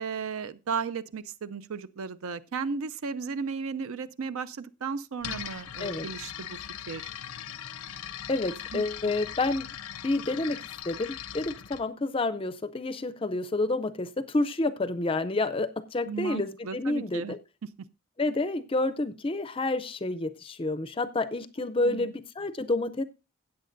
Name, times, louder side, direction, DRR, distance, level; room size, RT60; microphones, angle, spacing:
voice 1, 0.0-6.6 6.9-7.1 8.7-8.8 16.1-17.4 21.8-22.1, right 5 dB, 70° right, 0.5 m, -35 dB
sound 1, 5.2-11.8, left 10 dB, 75° left, 0.6 m, -40 dB
voice 2, 8.3-9.7 10.0-17.4 18.2-23.0, left 2 dB, 25° left, 0.4 m, -29 dB
15.5 x 8.4 x 2.6 m
head